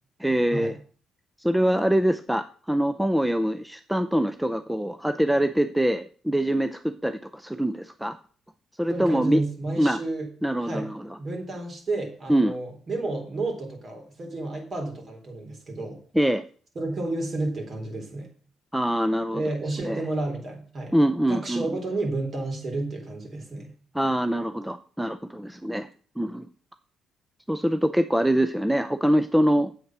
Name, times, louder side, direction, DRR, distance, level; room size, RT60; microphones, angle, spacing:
voice 1, 0.2-0.7 1.4-8.2 8.8-9.4 9.8-10.0 10.4-11.2 12.3-12.6 16.1-16.4 18.7-19.4 19.8-20.0 20.9-21.7 23.9-25.9 26.2-26.5 27.5-29.7, right 1 dB, 5° right, 10 dB, 0.6 m, -24 dB
voice 2, 8.9-10.3 10.6-10.9 11.2-16.0 16.8-18.3 19.3-20.9 21.3-23.7, right 2 dB, 45° right, 3 dB, 3.9 m, -31 dB
8.6 x 8.0 x 6.2 m, 0.42 s
cardioid pair, 90°, 0 cm